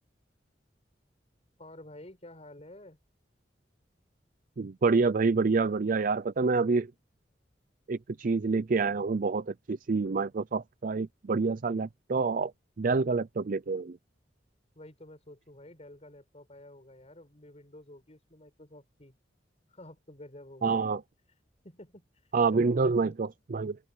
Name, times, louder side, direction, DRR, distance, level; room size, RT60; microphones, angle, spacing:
voice 1, 1.6-3.0 14.7-19.2 19.7-21.4 21.6-23.2, left 1 dB, 40° left, 6.5 m, -50 dB
voice 2, 4.6-6.9 7.9-12.5 12.8-14.0 20.6-21.0 22.3-23.8, right 4 dB, 50° right, 0.5 m, -27 dB
open air
head